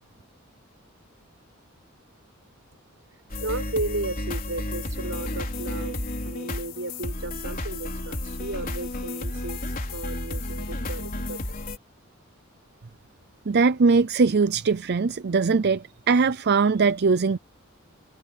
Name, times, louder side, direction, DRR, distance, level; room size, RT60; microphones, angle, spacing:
sound 1, 3.3-11.8, left 1 dB, 45° left, 4.3 m, -32 dB
voice 1, 3.4-11.4, right 2 dB, 75° right, 7.3 m, -34 dB
voice 2, 13.5-17.4, right 4 dB, 55° right, 0.5 m, -21 dB
head